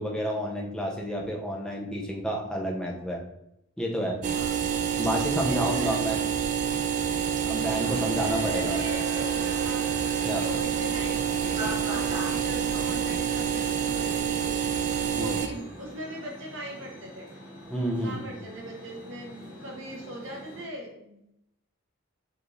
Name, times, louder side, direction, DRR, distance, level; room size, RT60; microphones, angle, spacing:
voice 1, 0.0-3.2 3.8-4.2 5.0-6.2 7.5-8.8 10.2-10.4 15.2-15.4 17.7-18.2, equal, 5° left, -1 dB, 0.6 m, -30 dB
sound 1, 4.2-15.5, right 8 dB, 40° right, 0.3 m, -28 dB
voice 2, 4.3-4.6 5.4-6.2 8.0-9.9 10.2-14.6 15.1-17.3 18.0-21.3, equal, 65° right, 0 dB, 1.0 m, -40 dB
sound 2, 7.7-20.6, equal, 25° right, 1.2 m, -42 dB
5.0 x 2.5 x 3.2 m, 0.80 s
head